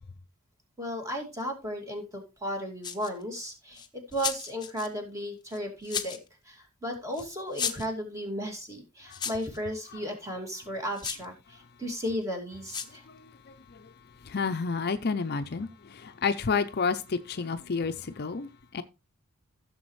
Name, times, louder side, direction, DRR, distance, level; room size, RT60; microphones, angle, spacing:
voice 1, 0.8-6.2 6.4-13.0, equal, 15° right, 2.4 m, -35 dB
sound 1, 2.8-3.2 3.7-4.9 5.5-6.3 7.1-7.2 7.5-7.9 9.1-9.6 10.9-11.2 12.7-13.0, left 7 dB, 20° left, 0.9 m, -34 dB
voice 2, 13.5-13.8 14.2-18.8, left 5 dB, 45° left, 0.5 m, -30 dB
15.5 x 6.9 x 3.2 m
head